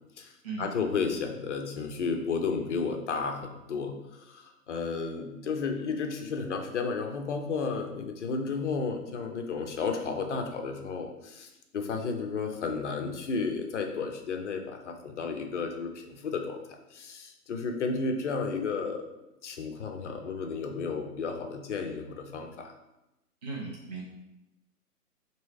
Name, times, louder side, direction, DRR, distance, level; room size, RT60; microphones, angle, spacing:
voice 1, 0.6-3.9 4.2-11.5 11.7-19.0 19.4-22.7, left 4 dB, 50° left, 4 dB, 0.7 m, -32 dB
voice 2, 23.4-24.0, right 4 dB, 30° right, -3 dB, 0.4 m, -37 dB
3.1 x 3.0 x 4.2 m, 0.94 s
figure-of-eight pair, 125°, 47 cm